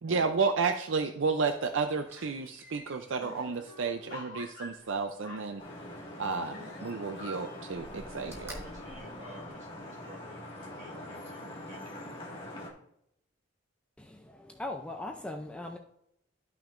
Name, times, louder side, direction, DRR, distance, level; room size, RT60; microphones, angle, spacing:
voice 1, 0.0-5.6 6.2-8.5, right 4 dB, 70° right, 6 dB, 0.5 m, -31 dB
Slam, 1.4-5.3 6.4-7.3 7.7-10.0 10.5-10.6, equal, 15° right, 1.3 m, -52 dB
sound 1, 1.8-2.3 2.6-2.7 2.9-6.0 6.5-7.6, left 1 dB, 50° left, 1.7 m, -47 dB
Vehicle horn car horn honking / Traffic noise roadway noise, 5.6-12.7, left 1 dB, 25° left, 1.9 m, -44 dB
voice 2, 8.2-12.0, right 1 dB, 40° right, -3 dB, 3.4 m, -51 dB
voice 3, 14.0-15.8, left 2 dB, 5° left, 3 dB, 0.5 m, -39 dB
12.5 x 5.8 x 2.5 m, 0.77 s
head